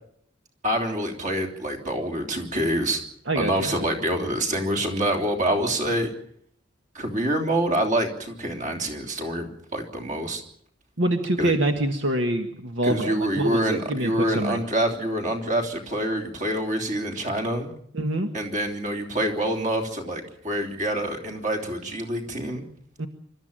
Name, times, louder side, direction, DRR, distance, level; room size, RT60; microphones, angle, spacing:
voice 1, 0.6-3.0 3.3-6.1 6.9-10.4 11.4-11.5 12.8-17.7 18.3-22.6, right 1 dB, 40° right, 4 dB, 3.3 m, -26 dB
voice 2, 3.3-3.9 11.0-14.6 17.9-18.3 23.0-23.1, right 1 dB, 70° right, 5 dB, 1.6 m, -26 dB
25.5 x 13.0 x 9.0 m, 0.68 s
head